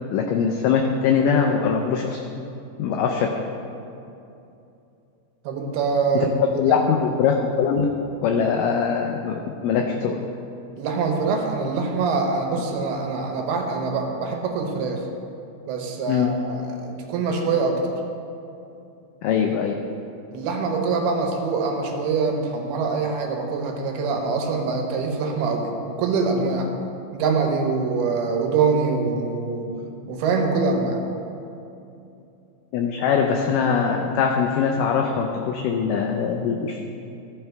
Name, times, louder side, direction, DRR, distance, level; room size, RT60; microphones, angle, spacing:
voice 1, 0.1-2.2 2.8-3.3 6.1-7.9 8.2-10.2 16.1-16.3 19.2-19.7 32.7-36.8, left 6 dB, 85° left, 3 dB, 1.9 m, -22 dB
voice 2, 5.4-6.3 6.7-6.9 10.8-15.1 15.7-18.0 20.3-26.7 27.1-29.7 30.1-31.0, right 4 dB, 85° right, 2 dB, 2.9 m, -24 dB
14.0 x 5.7 x 4.5 m, 2.7 s
omnidirectional pair, 4.4 m